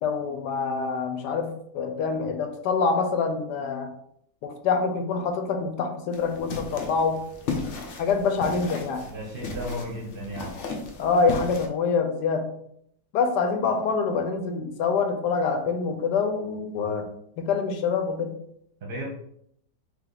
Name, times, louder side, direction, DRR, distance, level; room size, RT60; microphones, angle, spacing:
voice 1, 0.0-3.9 4.4-7.2 8.0-9.1 11.0-12.5 13.1-17.1 17.4-18.4, left 5 dB, 85° left, 5 dB, 1.3 m, -26 dB
sound 1, 6.1-11.7, left 4 dB, 60° left, 0.8 m, -35 dB
voice 2, 9.1-10.7 18.8-19.1, equal, 45° right, -1 dB, 0.8 m, -34 dB
3.5 x 3.0 x 3.8 m, 0.71 s
omnidirectional pair, 1.8 m